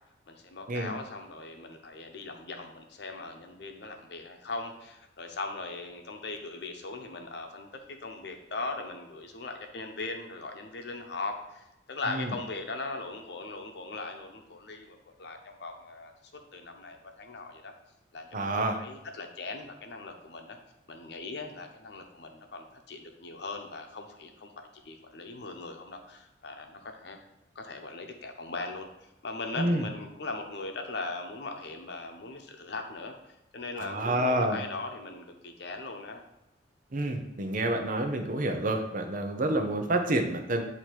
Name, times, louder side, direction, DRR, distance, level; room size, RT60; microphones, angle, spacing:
voice 1, 0.3-7.7 8.0-16.1 16.5-17.7 18.1-18.5 18.8-20.6 20.9-27.3 27.5-36.2, left 3 dB, 65° left, 4 dB, 0.8 m, -39 dB
voice 2, 18.3-18.8 29.6-29.9 33.8-34.6 36.9-40.6, right 1 dB, 45° right, 4 dB, 0.7 m, -28 dB
8.4 x 2.9 x 4.5 m, 0.91 s
head